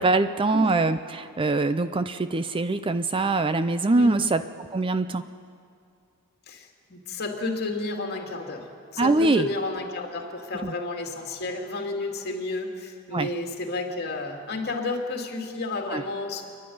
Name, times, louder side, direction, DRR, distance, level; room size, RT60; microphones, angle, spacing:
voice 1, 0.0-4.4 4.7-5.2 9.0-9.5 10.6-10.7 13.1-13.3 15.9-16.0, right 2 dB, 25° right, 12 dB, 0.5 m, -23 dB
voice 2, 6.5-16.4, left 2 dB, 45° left, 2 dB, 2.6 m, -31 dB
28.5 x 11.5 x 9.5 m, 2.3 s
head